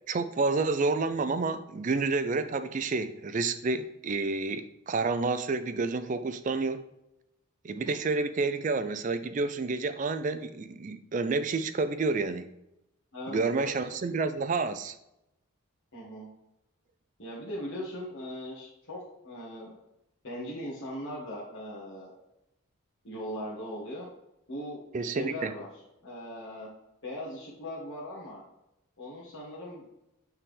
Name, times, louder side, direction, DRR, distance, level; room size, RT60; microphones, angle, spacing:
voice 1, 0.1-6.8 7.6-12.5 13.3-14.9 24.9-25.5, right 3 dB, 35° right, 11 dB, 0.3 m, -29 dB
voice 2, 13.1-13.7 15.9-16.3 17.2-19.7 20.2-22.1 23.0-24.1 24.5-25.7 26.0-26.7 27.0-28.4 29.0-29.8, equal, 60° left, -7 dB, 1.5 m, -39 dB
8.3 x 3.5 x 3.4 m, 0.87 s
head